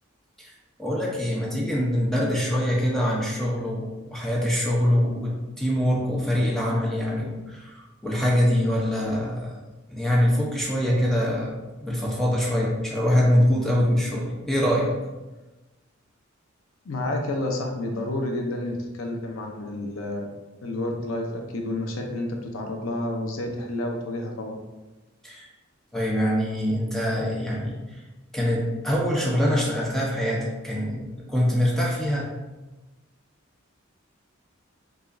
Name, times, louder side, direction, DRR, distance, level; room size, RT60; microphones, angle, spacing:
voice 1, 0.8-9.5 9.9-11.5 11.8-14.9 25.2-25.5 25.9-28.0 28.3-32.3, equal, ahead, -4 dB, 0.6 m, -24 dB
voice 2, 16.8-20.3 20.6-24.6, left 1 dB, 90° left, 2 dB, 0.6 m, -30 dB
4.8 x 2.4 x 2.5 m, 1.1 s
head